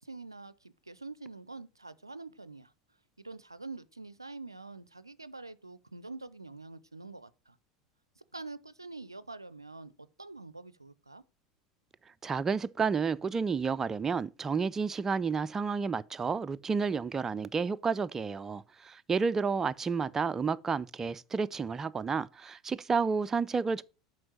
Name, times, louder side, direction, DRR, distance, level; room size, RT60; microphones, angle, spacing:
voice 1, 0.0-2.7 3.2-7.6 8.2-11.2, right 3 dB, 85° right, 0.4 m, -46 dB
voice 2, 12.2-23.8, right 5 dB, 20° right, 0.4 m, -31 dB
7.7 x 5.1 x 5.4 m
figure-of-eight pair, 75°, 2 cm